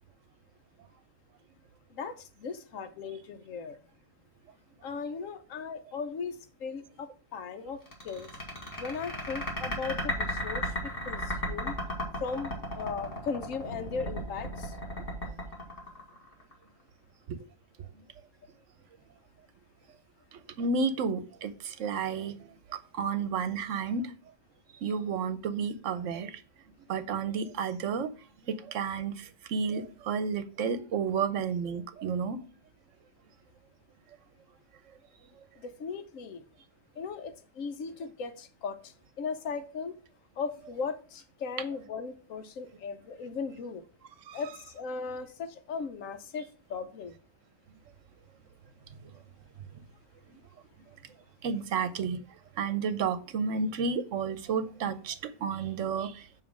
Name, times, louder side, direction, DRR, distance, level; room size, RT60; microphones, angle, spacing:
voice 1, 1.9-3.8 4.8-7.8 8.0-8.3 8.8-10.7 11.1-11.8 12.2-14.7 35.6-36.4 37.0-39.9 40.4-43.8 44.3-47.2, left 5 dB, 80° left, 9 dB, 1.2 m, -37 dB
sound 1, 7.9-16.5, left 1 dB, 45° left, 2.2 m, -34 dB
voice 2, 20.3-22.3 22.7-24.1 24.8-26.4 26.9-28.1 28.5-32.4 44.3-44.4 49.0-49.1 51.4-52.2 52.6-56.4, right 5 dB, 70° right, 12 dB, 1.0 m, -31 dB
7.2 x 3.0 x 6.0 m, 0.37 s
omnidirectional pair, 1.3 m